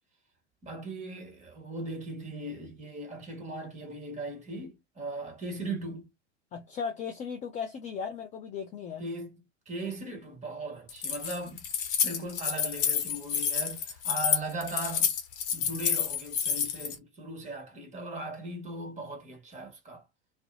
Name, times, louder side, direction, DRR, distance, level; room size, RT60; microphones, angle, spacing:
voice 1, 0.6-6.1 9.0-11.6 12.0-15.1 15.5-20.1, right 2 dB, 20° right, 1.4 m, -38 dB
voice 2, 6.5-9.1, left 6 dB, 20° left, 0.4 m, -36 dB
Keys jangling, 10.9-16.9, left 8 dB, 40° left, 0.9 m, -29 dB
2.6 x 2.1 x 2.5 m
figure-of-eight pair, 90°, 36 cm